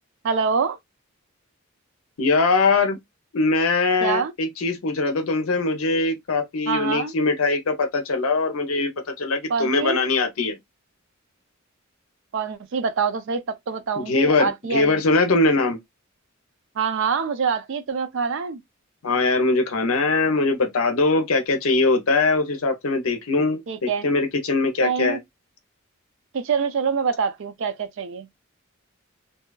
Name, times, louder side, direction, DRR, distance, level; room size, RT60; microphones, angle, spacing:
voice 1, 0.2-0.8 4.0-4.3 6.7-7.1 9.5-10.0 12.3-15.0 16.8-18.6 23.7-24.0 24.8-25.2 26.3-28.3, right 6 dB, 60° right, 0.4 m, -25 dB
voice 2, 2.2-3.0 3.3-10.6 14.0-15.8 19.0-25.2, left 3 dB, 80° left, 0.6 m, -21 dB
2.7 x 2.2 x 2.2 m
head